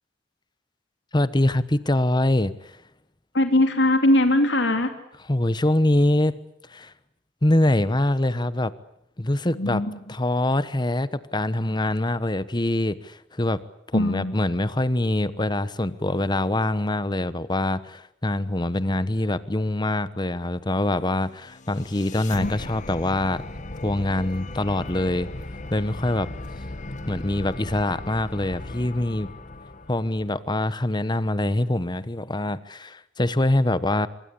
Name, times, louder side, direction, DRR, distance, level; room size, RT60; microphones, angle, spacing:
voice 1, 1.1-2.7 5.3-6.4 6.7-6.9 7.4-8.7 9.2-9.8 10.1-13.6 13.9-23.4 23.8-25.3 25.7-26.3 27.1-29.3 29.9-34.1, left 1 dB, 25° left, 15 dB, 1.1 m, -24 dB
voice 2, 3.3-4.9 9.6-9.9 13.9-14.4 22.4-22.5, left 1 dB, 90° left, 7 dB, 2.8 m, -21 dB
sound 1, 21.3-30.5, left 2 dB, 45° left, 1.4 m, -37 dB
25.0 x 22.5 x 8.5 m, 0.74 s
head